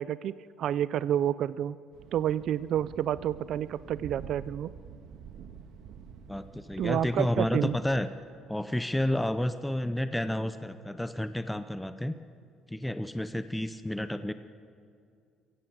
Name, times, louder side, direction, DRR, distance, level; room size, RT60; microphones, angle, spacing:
voice 1, 0.0-1.8 2.1-4.7 6.8-7.8, right 10 dB, 50° right, 17 dB, 0.4 m, -29 dB
Thunder, 1.9-8.0, right 7 dB, 70° right, 1.6 m, -48 dB
voice 2, 6.3-8.1 8.5-12.2 12.7-14.3, left 1 dB, 5° left, 11 dB, 0.5 m, -30 dB
23.0 x 16.0 x 8.0 m, 2.4 s
cardioid pair, 160°, 0 cm